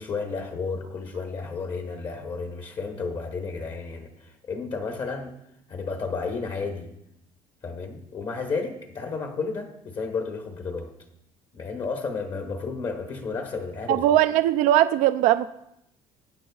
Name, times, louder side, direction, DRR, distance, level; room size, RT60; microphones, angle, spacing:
voice 1, 0.0-5.4 5.7-6.9 7.6-10.9 11.5-14.1, left 4 dB, 40° left, 3 dB, 1.1 m, -32 dB
voice 2, 13.9-15.5, right 13 dB, 90° right, 11 dB, 0.4 m, -20 dB
19.0 x 8.9 x 2.4 m, 0.78 s
cardioid pair, 145°, 13 cm